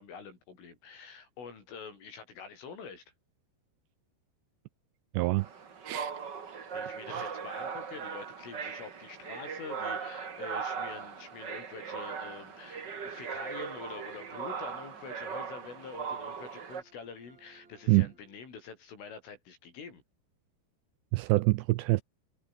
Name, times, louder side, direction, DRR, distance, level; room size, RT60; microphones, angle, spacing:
voice 1, 0.0-3.0 6.7-20.0, left 5 dB, 90° left, 9.1 m, -46 dB
voice 2, 5.1-5.5 5.9-6.1 7.1-7.3 17.9-18.1 21.1-22.0, right 21 dB, 85° right, 2.6 m, -26 dB
sound 1, 5.4-16.8, right 6 dB, 65° right, 1.0 m, -39 dB
sound 2, 10.4-18.8, right 3 dB, 35° right, 8.1 m, -64 dB
omnidirectional pair, 5.5 m